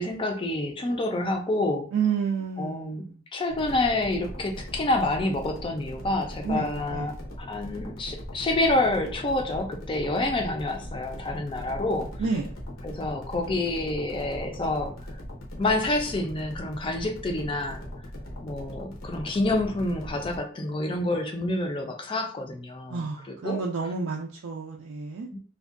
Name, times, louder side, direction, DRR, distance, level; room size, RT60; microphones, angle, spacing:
voice 1, 0.0-1.9 2.6-3.0 3.3-12.1 12.8-14.9 15.6-17.8 18.4-23.6 25.3-25.4, left 2 dB, 25° left, 3 dB, 0.4 m, -28 dB
voice 2, 1.9-3.2 6.4-7.1 12.2-12.5 22.9-25.3, right 5 dB, 75° right, -1 dB, 0.4 m, -30 dB
sound 1, 3.5-20.4, left 1 dB, 85° left, 0.8 m, -40 dB
2.6 x 2.2 x 2.4 m, 0.41 s
head